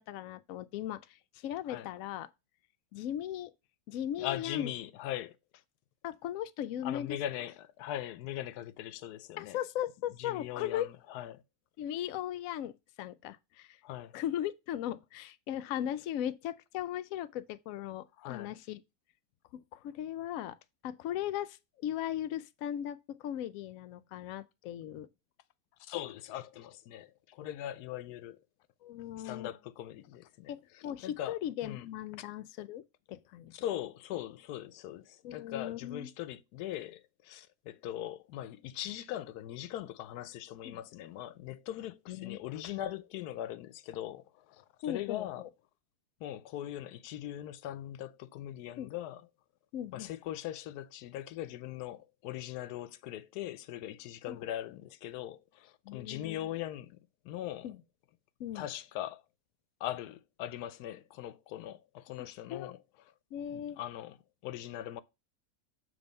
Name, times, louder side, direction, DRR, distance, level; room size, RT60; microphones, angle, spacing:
voice 1, 0.0-2.3 2.9-3.5 3.9-4.7 6.0-7.1 9.4-10.9 11.8-12.7 13.0-13.8 14.1-18.8 19.5-20.6 20.8-25.1 28.8-29.5 30.5-32.8 33.1-33.6 35.2-36.1 40.6-40.8 42.1-42.4 44.8-45.5 48.8-48.9 49.7-50.1 54.3-54.4 55.8-56.5 57.6-57.8 58.4-58.7 62.5-62.7 63.3-63.8, left 11 dB, 70° left, 0.9 m, -38 dB
voice 2, 4.2-5.4 6.8-9.6 10.2-11.4 13.8-14.1 18.2-18.5 25.8-28.4 29.2-31.9 33.5-45.4 46.2-49.3 49.9-57.0 57.2-57.7 58.5-59.2 59.8-62.8 63.5-64.2 64.4-65.0, left 12 dB, 90° left, 1.1 m, -40 dB
7.1 x 3.4 x 5.2 m
omnidirectional pair, 1.6 m